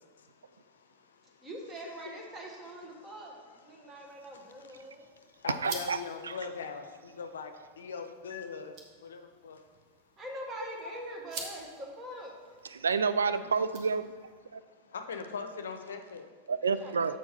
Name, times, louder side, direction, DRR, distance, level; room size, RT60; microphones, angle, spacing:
voice 1, 0.0-1.5 2.0-2.1 2.9-3.1 3.4-8.8 9.0-9.6 10.8-11.2 12.8-12.9 13.3-13.5 14.6-16.3, left 5 dB, 65° left, 6 dB, 0.7 m, -43 dB
voice 2, 1.4-5.1 10.2-12.3 16.8-17.2, right 1 dB, 20° right, 0 dB, 1.6 m, -43 dB
sound 1, 4.1-14.4, right 4 dB, 40° right, 1.2 m, -49 dB
voice 3, 5.6-6.0 6.2-6.4 12.7-14.1 14.5-14.6 16.5-17.2, right 5 dB, 70° right, 12 dB, 0.3 m, -29 dB
7.3 x 4.6 x 5.5 m, 1.5 s
figure-of-eight pair, 90°, 0 cm